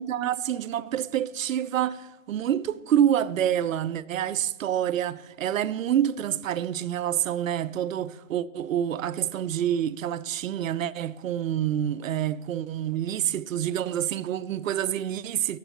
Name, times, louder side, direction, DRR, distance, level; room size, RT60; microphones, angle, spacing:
voice 1, 0.0-15.6, right 10 dB, 90° right, 0.6 m, -27 dB
17.5 x 7.4 x 3.0 m
hypercardioid pair, 115°, 39 cm